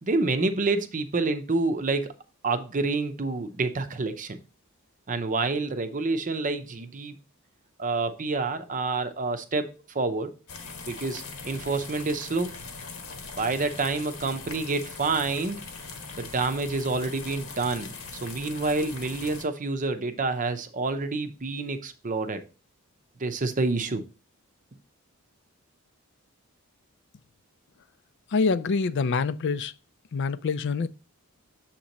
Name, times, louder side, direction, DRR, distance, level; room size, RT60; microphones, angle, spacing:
voice 1, 0.0-2.1 2.4-4.4 5.1-7.2 7.8-10.3 10.8-12.5 13.4-15.6 16.2-22.4 23.2-24.0, right 3 dB, 35° right, 0.6 m, -28 dB
sound 1, 10.5-19.4, left 4 dB, 70° left, 1.0 m, -41 dB
voice 2, 28.3-29.7 30.1-30.9, left 4 dB, 55° left, 0.4 m, -25 dB
7.3 x 3.0 x 5.2 m
head